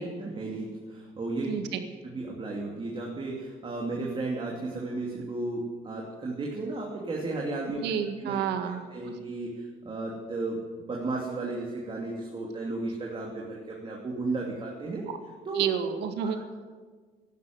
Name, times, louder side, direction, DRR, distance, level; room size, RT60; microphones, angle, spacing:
voice 1, 0.0-1.5 2.0-7.8 8.2-8.4 8.6-15.1 15.4-15.6 16.2-16.5, right 2 dB, 30° right, -2 dB, 2.8 m, -34 dB
voice 2, 1.5-1.8 7.8-9.2 15.1-15.2 15.6-16.4, right 8 dB, 85° right, 7 dB, 1.7 m, -30 dB
12.5 x 11.5 x 9.5 m, 1.5 s
cardioid pair, 110°, 17 cm